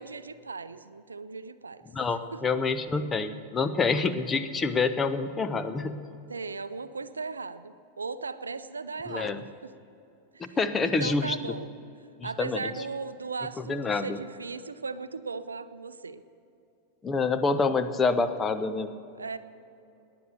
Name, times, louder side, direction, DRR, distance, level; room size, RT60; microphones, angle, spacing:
voice 1, 0.0-1.8 2.3-2.6 6.3-9.7 10.3-11.7 12.2-16.2 19.2-19.4, right 4 dB, 75° right, 14 dB, 0.5 m, -37 dB
voice 2, 1.9-5.9 9.1-9.4 10.4-11.4 12.2-12.7 13.7-14.2 17.0-18.9, left 4 dB, 20° left, 10 dB, 0.8 m, -27 dB
18.5 x 10.5 x 6.8 m, 2.8 s
figure-of-eight pair, 90°, 0 cm